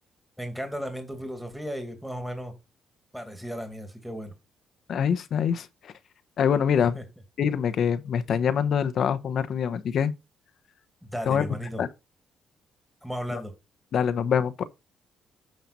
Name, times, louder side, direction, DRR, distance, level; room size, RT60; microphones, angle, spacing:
voice 1, 0.4-2.5 3.1-4.3 6.8-7.0 11.0-11.8 13.0-13.5, equal, ahead, 2.3 m, -35 dB
voice 2, 4.9-5.9 6.4-7.0 7.4-10.1 11.3-11.5 11.8-11.9 13.3-13.4 13.9-14.6, left 7 dB, 65° left, 1.0 m, -25 dB
9.5 x 5.7 x 4.1 m
cardioid pair, 90°, 0 cm